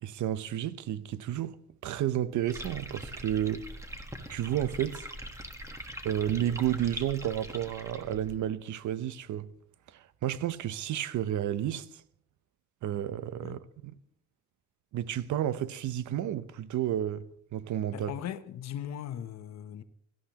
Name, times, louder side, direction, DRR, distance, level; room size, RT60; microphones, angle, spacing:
voice 1, 0.0-1.6 1.8-3.6 4.3-5.1 6.0-9.5 9.9-11.9 12.8-13.9 14.9-17.2 17.5-18.1, right 11 dB, 65° right, 0.9 m, -31 dB
sound 1, 2.5-8.4, right 1 dB, 10° right, 1.4 m, -42 dB
voice 2, 17.9-19.8, left 10 dB, 55° left, 0.9 m, -39 dB
17.0 x 14.0 x 3.0 m
cardioid pair, 120°, 31 cm